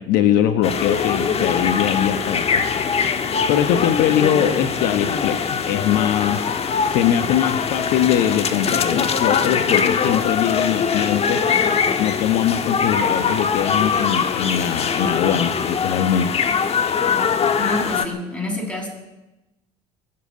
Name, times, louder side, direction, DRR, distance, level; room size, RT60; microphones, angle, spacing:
voice 1, 0.0-2.6 3.5-6.5 6.8-11.4 12.0-16.3, left 10 dB, 70° left, 8 dB, 1.2 m, -21 dB
sound 1, 0.6-18.1, left 6 dB, 40° left, 1.4 m, -22 dB
voice 2, 17.6-18.9, left 1 dB, 10° left, -1 dB, 7.9 m, -27 dB
21.5 x 7.8 x 8.8 m, 0.99 s
hypercardioid pair, 75°, 16 cm